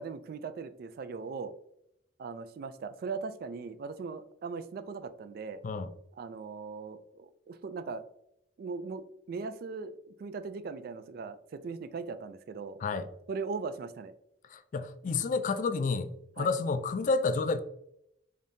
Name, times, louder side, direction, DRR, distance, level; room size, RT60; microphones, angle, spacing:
voice 1, 0.0-1.5 2.2-5.6 6.1-8.0 8.6-12.8 13.3-14.1 16.4-16.5, right 4 dB, 60° right, 0.3 m, -39 dB
voice 2, 14.5-16.1 16.4-17.6, left 4 dB, 45° left, 0.3 m, -30 dB
5.1 x 2.7 x 2.6 m
head